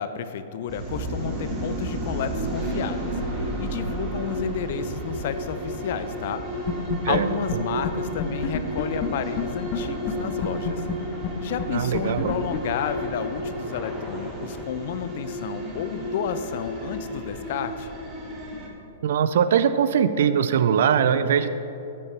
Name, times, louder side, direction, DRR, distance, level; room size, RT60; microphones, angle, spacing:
voice 1, 0.0-6.7 7.1-10.8 11.4-17.9, left 8 dB, 55° left, 11 dB, 0.6 m, -31 dB
sound 1, 0.7-18.7, right 1 dB, 25° right, 1.9 m, -32 dB
sound 2, 6.7-7.2 7.5-7.6 7.8-7.9 8.2-9.8 10.1-10.2 10.4-13.4, left 8 dB, 40° left, 1.0 m, -28 dB
sound 3, 7.3-14.7, equal, 5° right, 1.3 m, -46 dB
voice 2, 11.7-12.3 19.0-21.5, right 8 dB, 65° right, 12 dB, 0.4 m, -21 dB
12.5 x 8.6 x 3.4 m, 2.9 s
hypercardioid pair, 110°, 0 cm